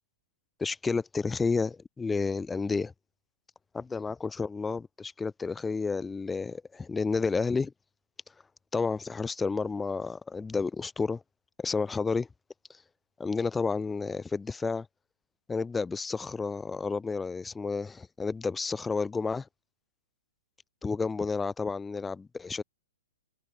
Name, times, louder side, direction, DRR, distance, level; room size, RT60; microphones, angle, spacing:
voice 1, 0.6-2.9 3.7-7.7 8.7-11.2 11.6-12.3 13.2-14.9 15.5-19.5 20.8-22.6, left 4 dB, 10° left, 1.1 m, -31 dB
hypercardioid pair, 120°, 0 cm